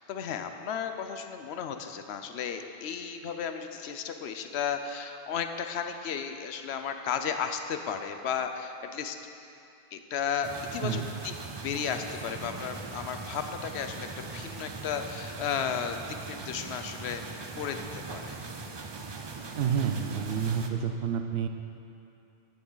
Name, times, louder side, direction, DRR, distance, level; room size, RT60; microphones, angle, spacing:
voice 1, 0.0-9.2 9.9-11.3 11.6-16.0 16.2-17.2 17.6-18.4, left 7 dB, 85° left, 7 dB, 0.9 m, -34 dB
sound 1, 10.4-20.7, right 4 dB, 40° right, 0.4 m, -40 dB
voice 2, 10.8-11.1 19.6-21.5, right 7 dB, 75° right, 7 dB, 0.8 m, -29 dB
10.5 x 8.6 x 3.9 m, 2.7 s
omnidirectional pair, 1.1 m